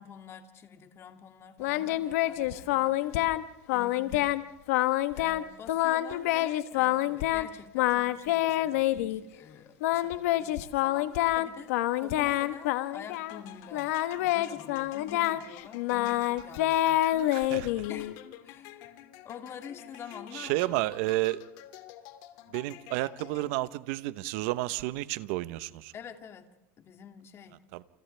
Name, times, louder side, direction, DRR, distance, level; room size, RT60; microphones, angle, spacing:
voice 1, 0.0-3.3 3.7-4.4 5.1-17.3 17.9-18.2 18.4-18.9 19.2-20.9 25.9-26.5 26.8-27.6, left 7 dB, 35° left, 6 dB, 2.5 m, -47 dB
Singing, 1.6-3.4 3.7-4.4 4.7-5.4 5.7-7.5 7.7-9.2 9.8-13.4 13.7-18.1, left 15 dB, 80° left, 1.2 m, -27 dB
sound 1, 13.1-23.8, left 13 dB, 60° left, 2.6 m, -50 dB
voice 2, 17.3-17.7 20.3-21.4 22.5-25.9 27.7-27.8, right 18 dB, 70° right, 15 dB, 1.0 m, -31 dB
30.0 x 28.5 x 3.4 m, 1.0 s
supercardioid pair, 130°, 8 cm